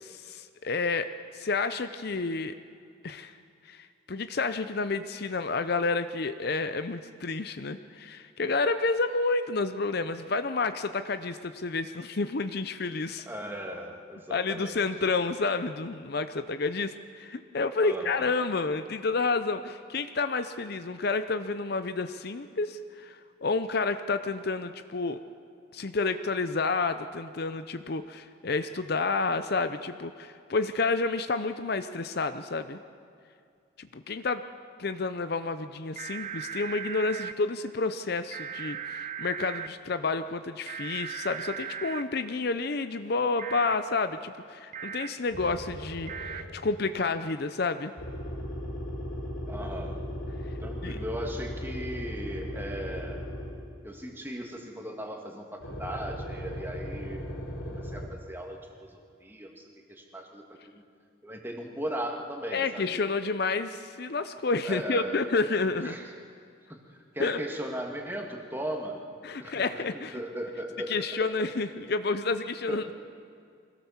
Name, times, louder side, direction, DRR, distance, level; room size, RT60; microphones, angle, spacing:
voice 1, 0.1-2.5 3.0-3.3 3.7-13.3 14.3-25.2 25.7-32.8 33.8-34.4 34.8-47.9 50.8-51.0 62.5-66.0 67.2-67.4 69.2-70.2 70.9-72.9, left 3 dB, 50° left, 10 dB, 0.6 m, -30 dB
voice 2, 13.2-14.9 17.8-18.4 49.5-50.0 50.6-53.2 53.8-57.2 57.7-60.8 61.2-63.0 64.6-65.2 65.8-66.1 66.7-66.8 67.1-69.0 69.4-71.3 72.7-72.8, right 1 dB, 10° right, 1 dB, 2.0 m, -38 dB
sound 1, 36.0-37.3 38.3-39.7 40.7-42.0 43.4-43.7 44.7-45.1 46.1-46.4, right 7 dB, 35° right, 0.6 m, -37 dB
sound 2, 45.3-46.8 48.0-53.8 55.6-58.1, equal, 75° left, 4.3 m, -37 dB
24.0 x 17.0 x 7.2 m, 2.4 s
head